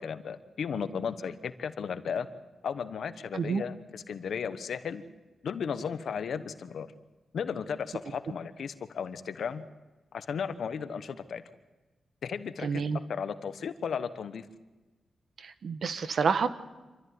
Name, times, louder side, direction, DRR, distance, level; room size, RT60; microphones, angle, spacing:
voice 1, 0.0-2.3 2.6-5.0 5.4-6.9 7.3-9.6 10.1-11.4 12.2-12.8 13.1-14.5, left 6 dB, 75° left, 11 dB, 1.1 m, -35 dB
voice 2, 12.6-13.0 15.4-16.5, right 5 dB, 70° right, 11 dB, 1.2 m, -28 dB
27.0 x 13.5 x 9.5 m, 1.2 s
cardioid pair, 85°, 0 cm